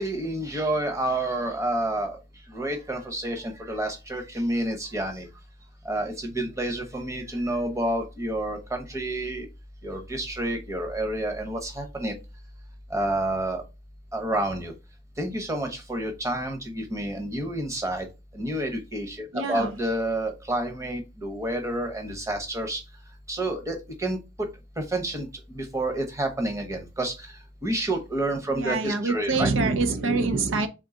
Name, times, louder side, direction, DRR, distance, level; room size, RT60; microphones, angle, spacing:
voice 1, 0.0-2.2 2.5-5.3 5.8-9.5 9.8-12.1 12.9-13.6 14.1-14.7 15.2-18.1 18.3-22.8 23.3-29.5, right 1 dB, 15° right, 0.9 m, -29 dB
voice 2, 19.3-19.7 28.6-30.7, right 3 dB, 85° right, 0.6 m, -25 dB
3.8 x 3.6 x 3.7 m
head